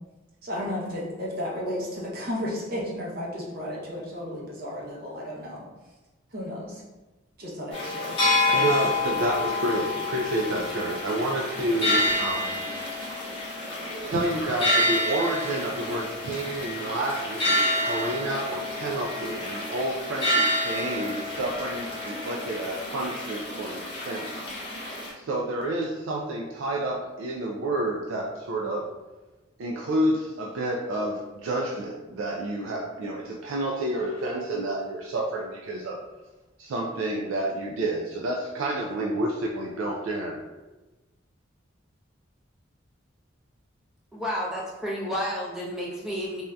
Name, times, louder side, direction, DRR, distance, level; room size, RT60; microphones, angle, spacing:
voice 1, 0.4-5.6 6.3-6.8 7.4-8.2 8.4-8.6 9.1-9.2, left 1 dB, 45° right, -4 dB, 0.7 m, -33 dB
sound 1, 7.7-25.1, left 1 dB, 25° left, 0.8 m, -28 dB
voice 2, 8.5-12.6 14.1-24.6 25.2-28.9 29.6-36.0 36.6-40.4, right 1 dB, 80° right, -1 dB, 0.3 m, -29 dB
voice 3, 44.1-46.4, equal, 5° right, -5 dB, 0.5 m, -31 dB
3.4 x 2.6 x 2.2 m, 1.1 s
head